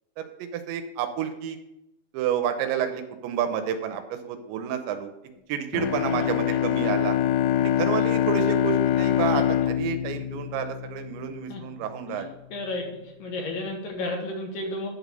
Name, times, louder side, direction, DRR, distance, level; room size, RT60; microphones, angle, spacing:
voice 1, 0.2-1.6 2.1-5.1 5.5-7.2 7.6-12.3, right 9 dB, 90° right, 7 dB, 3.0 m, -30 dB
Bowed string instrument, 5.7-11.3, left 11 dB, 85° left, 2.3 m, -24 dB
voice 2, 6.0-6.6 9.3-9.4 11.5-11.6 12.1-12.2 12.5-14.9, left 2 dB, 60° left, 0 dB, 2.9 m, -33 dB
10.5 x 4.1 x 6.9 m, 0.88 s
omnidirectional pair, 5.3 m